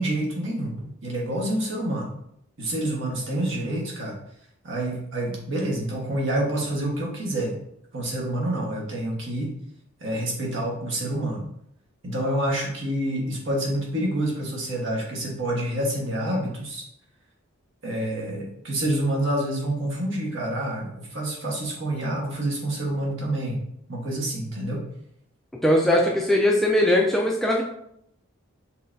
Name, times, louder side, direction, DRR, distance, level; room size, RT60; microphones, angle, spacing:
voice 1, 0.0-2.1 2.6-4.1 4.6-7.5 7.9-9.5 10.0-11.5 12.0-16.8 17.8-23.6 23.9-24.8, right 1 dB, 60° right, -3 dB, 1.3 m, -27 dB
voice 2, 25.6-27.6, left 1 dB, ahead, -1 dB, 0.3 m, -20 dB
5.6 x 3.2 x 2.7 m, 0.75 s
head